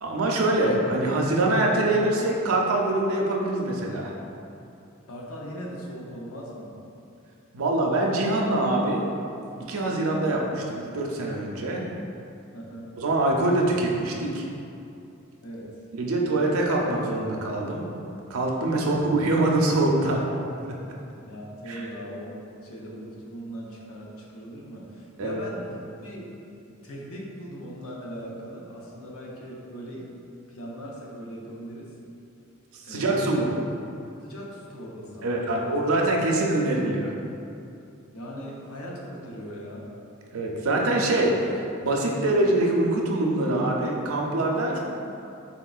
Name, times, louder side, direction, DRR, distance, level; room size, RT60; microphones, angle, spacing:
voice 1, 0.0-4.1 7.5-9.0 9.6-11.9 13.0-14.4 15.9-17.9 18.3-20.2 20.6-20.8 21.7-21.8 25.2-25.4 32.7-33.5 35.2-37.1 40.3-44.8, right 2 dB, 80° right, -1 dB, 0.5 m, -24 dB
voice 2, 5.1-6.7 12.5-12.9 15.4-15.8 18.7-19.0 21.2-22.4 22.6-26.3 26.7-30.0 30.5-31.9 32.8-33.3 34.2-35.7 38.1-39.9, equal, 85° left, -3 dB, 0.7 m, -39 dB
4.1 x 3.6 x 2.3 m, 2.7 s
head